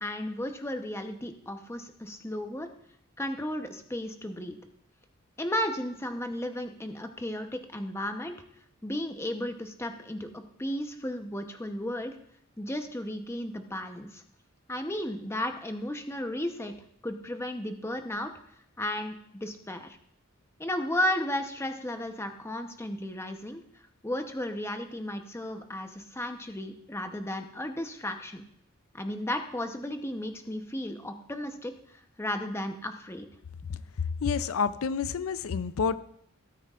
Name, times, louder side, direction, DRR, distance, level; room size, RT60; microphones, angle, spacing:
voice 1, 0.0-2.7 3.2-4.6 5.4-8.4 8.8-12.1 12.6-14.2 14.7-16.7 17.0-18.3 18.8-20.0 20.6-23.6 24.0-28.4 28.9-33.3 33.7-33.8, left 1 dB, 15° left, 6 dB, 0.8 m, -34 dB
voice 2, 34.2-36.0, left 5 dB, 85° left, 14 dB, 0.5 m, -29 dB
17.0 x 9.2 x 2.4 m, 0.69 s
head